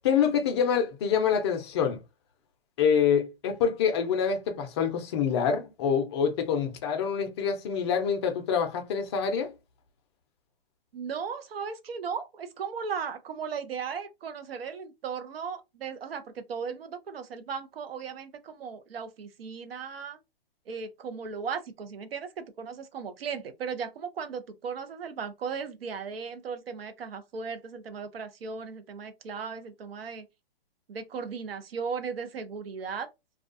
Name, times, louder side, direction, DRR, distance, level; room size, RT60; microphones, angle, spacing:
voice 1, 0.0-2.0 2.8-9.5, left 7 dB, 30° left, 0.5 m, -26 dB
voice 2, 10.9-20.2 20.7-30.2 30.9-33.1, right 6 dB, 75° right, 0.6 m, -36 dB
2.3 x 2.2 x 2.5 m
hypercardioid pair, 140°, 30 cm